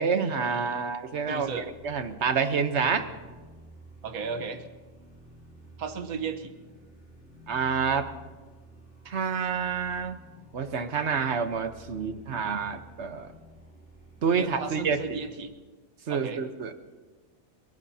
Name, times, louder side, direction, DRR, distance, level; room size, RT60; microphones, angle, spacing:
voice 1, 0.0-3.1 7.5-8.1 9.1-10.2 10.5-13.3 14.2-15.2 16.1-16.7, right 6 dB, 55° right, 9 dB, 1.2 m, -28 dB
sound 1, 0.7-15.5, right 2 dB, 5° left, 6.8 m, -52 dB
voice 2, 1.3-1.7 4.0-4.7 5.8-6.5 14.3-15.5 16.1-16.4, right 5 dB, 75° right, 8 dB, 1.5 m, -35 dB
29.5 x 17.5 x 2.8 m, 1.3 s
omnidirectional pair, 1.5 m